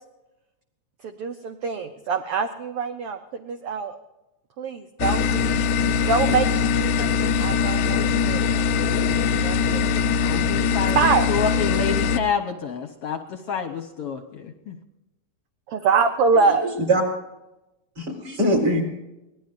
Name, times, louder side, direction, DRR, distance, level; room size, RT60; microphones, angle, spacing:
voice 1, 1.0-4.0 4.6-5.6 6.1-8.5 9.3-9.9 10.3-10.5 10.9-11.3 15.7-16.7, right 5 dB, 65° right, 6 dB, 1.6 m, -24 dB
sound 1, 5.0-12.2, left 6 dB, 90° left, 2.2 m, -22 dB
voice 2, 10.2-11.0 11.3-14.8, left 6 dB, 65° left, 6 dB, 1.7 m, -28 dB
voice 3, 16.3-17.0 18.0-18.8, right 1 dB, 35° right, 0 dB, 4.6 m, -23 dB
24.5 x 18.5 x 2.6 m, 0.97 s
omnidirectional pair, 3.4 m